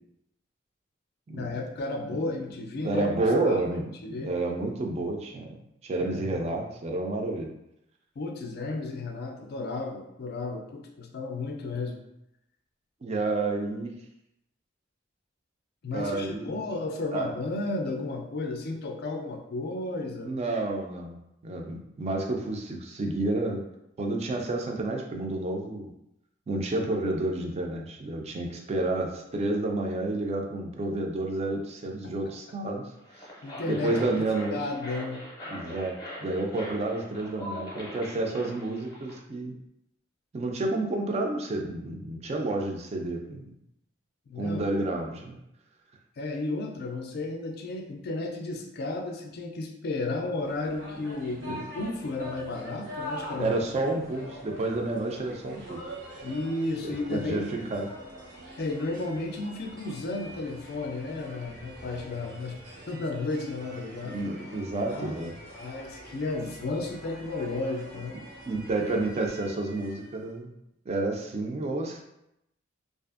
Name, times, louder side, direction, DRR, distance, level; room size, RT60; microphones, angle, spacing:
voice 1, 1.3-3.1 3.4-3.6 4.0-4.3 6.0-6.4 8.2-12.0 15.8-20.4 32.0-32.1 33.4-34.2 34.5-35.2 44.3-44.6 46.2-53.5 54.2-54.4 56.2-57.7 58.6-62.6 62.9-64.2 64.9-65.2 65.5-68.2, left 2 dB, 55° left, 3 dB, 0.4 m, -33 dB
voice 2, 2.8-5.5 5.8-7.5 13.0-14.0 15.9-16.6 17.1-17.3 20.2-21.2 21.4-23.6 24.0-25.9 26.5-33.3 33.7-34.6 35.5-39.5 40.3-43.6 44.4-45.4 51.4-51.6 53.3-55.8 56.8-57.9 64.0-65.4 68.5-70.5 70.9-72.0, right 2 dB, 35° right, 2 dB, 0.4 m, -30 dB
sound 1, 33.0-39.2, equal, 20° left, 0.7 m, -42 dB
sound 2, 50.4-70.3, equal, 90° right, 0.9 m, -44 dB
2.5 x 2.4 x 2.4 m, 0.82 s
head